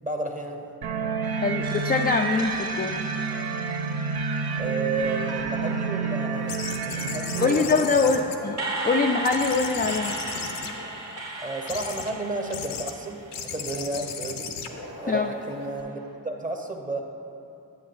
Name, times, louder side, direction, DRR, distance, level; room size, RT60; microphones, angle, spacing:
voice 1, 0.0-0.7 4.6-8.3 11.4-14.5 15.0-17.0, right 3 dB, 20° right, 3 dB, 0.9 m, -32 dB
sound 1, 0.8-7.5, right 5 dB, 60° right, 0.7 m, -29 dB
voice 2, 1.3-3.0 7.4-10.1 15.1-15.3, left 4 dB, 25° left, 2 dB, 0.4 m, -24 dB
sound 2, 1.6-4.8 5.3-13.7 14.7-16.1, right 2 dB, 40° right, 1.3 m, -37 dB
sound 3, 6.5-8.9 9.2-11.2 11.7-12.1 12.5-12.9 13.3-15.8, left 6 dB, 70° left, 0.7 m, -36 dB
8.6 x 7.8 x 2.6 m, 2.8 s
supercardioid pair, 40°, 42 cm